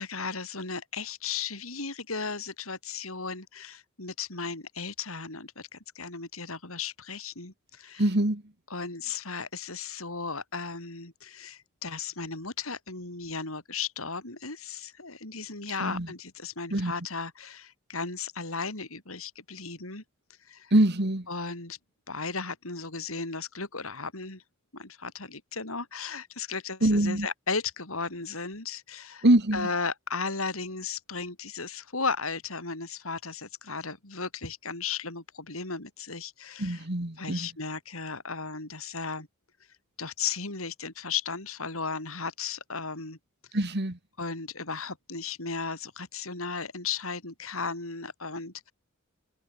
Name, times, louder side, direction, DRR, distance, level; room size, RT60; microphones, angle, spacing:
voice 1, 0.0-8.1 8.7-20.0 20.4-20.7 21.3-21.8 22.1-24.4 24.7-29.3 29.5-36.9 37.2-39.3 40.0-43.2 44.2-48.7, left 5 dB, 85° left, 6.3 m, -35 dB
voice 2, 8.0-8.4 15.8-16.1 16.7-16.9 20.7-21.3 26.8-27.3 29.2-29.7 36.6-37.5 43.5-44.0, right 1 dB, 55° right, 2.2 m, -24 dB
open air
head